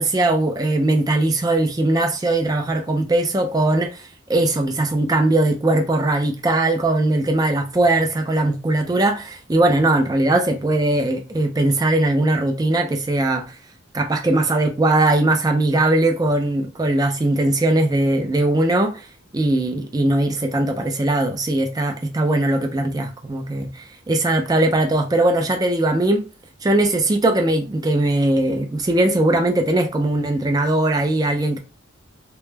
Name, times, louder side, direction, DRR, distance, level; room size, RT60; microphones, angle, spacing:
voice 1, 0.0-13.5 13.9-19.1 19.3-26.3 26.6-31.6, right 2 dB, 20° right, 0.3 m, -20 dB
2.2 x 2.0 x 3.2 m
head